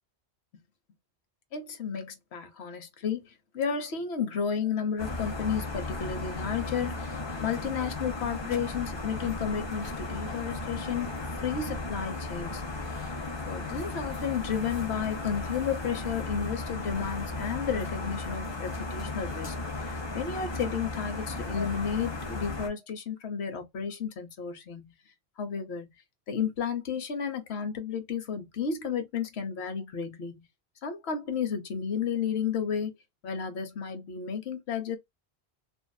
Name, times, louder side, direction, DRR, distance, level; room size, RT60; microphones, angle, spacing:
voice 1, 1.5-7.0 7.4-13.1 13.5-24.9 25.4-25.9 26.3-30.5 30.8-32.9 33.2-35.0, left 7 dB, 75° left, 1.1 m, -32 dB
sound 1, 5.0-22.7, left 2 dB, 30° left, 0.6 m, -35 dB
2.6 x 2.4 x 2.2 m
omnidirectional pair, 1.1 m